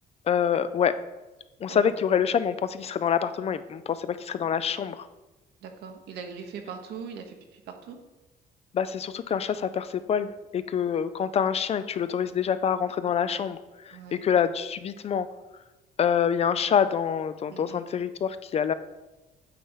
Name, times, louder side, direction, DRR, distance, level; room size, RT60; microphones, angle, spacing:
voice 1, 0.3-1.0 1.6-5.1 8.7-15.3 16.0-18.7, left 8 dB, 40° left, 13 dB, 0.4 m, -26 dB
voice 2, 5.6-8.0 12.2-12.3 13.9-14.2 17.5-17.8, right 6 dB, 75° right, 5 dB, 1.1 m, -41 dB
8.6 x 3.4 x 5.5 m, 1.1 s
cardioid pair, 110°, 17 cm